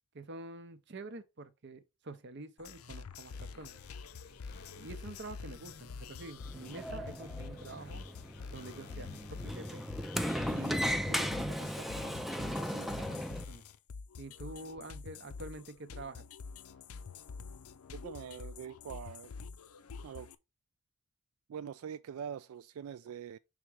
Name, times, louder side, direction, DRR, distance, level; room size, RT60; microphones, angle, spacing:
voice 1, 0.1-3.8 4.8-8.1 8.5-9.8 10.5-13.6 14.2-16.3, right 2 dB, 55° right, 0.7 m, -47 dB
sound 1, 2.6-20.3, left 5 dB, 90° left, 0.5 m, -47 dB
sound 2, 3.3-9.5, left 3 dB, 50° left, 0.7 m, -55 dB
Sliding door, 6.4-13.4, equal, ahead, 0.4 m, -36 dB
voice 2, 17.9-19.3 20.0-20.3 21.5-23.4, right 8 dB, 85° right, 0.3 m, -43 dB
5.8 x 3.6 x 4.6 m
head